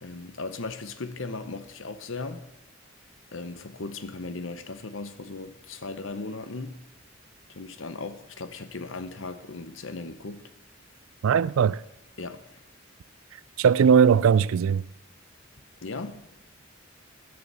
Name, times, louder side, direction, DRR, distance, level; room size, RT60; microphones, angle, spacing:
voice 1, 0.0-2.5 3.3-6.8 7.5-10.5 12.2-12.4 15.8-16.2, left 3 dB, 70° left, 0.9 m, -37 dB
voice 2, 11.2-11.8 13.6-14.8, right 7 dB, 85° right, 0.4 m, -19 dB
12.5 x 6.9 x 6.9 m
head